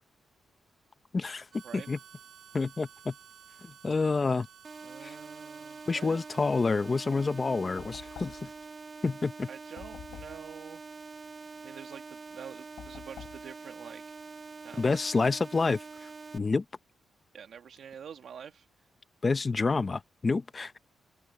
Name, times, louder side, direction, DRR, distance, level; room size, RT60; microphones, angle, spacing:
voice 1, 1.1-1.5 1.7-2.0 2.5-3.1 3.6-4.5 5.0-5.2 5.9-8.5 9.0-9.5 14.8-16.6 19.2-20.8, left 4 dB, 25° left, 0.7 m, -28 dB
Harmonica, 1.5-8.8, right 9 dB, 85° right, 3.0 m, -56 dB
sound 1, 4.6-16.4, right 4 dB, 30° right, 0.9 m, -45 dB
voice 2, 4.8-6.2 9.5-10.8 11.6-14.1 14.6-15.2 17.3-18.7, right 7 dB, 65° right, 1.3 m, -47 dB
Knock, 7.8-8.6 9.8-10.5 12.8-13.5, left 10 dB, 90° left, 6.6 m, -47 dB
open air
wide cardioid pair, 145°, 0 cm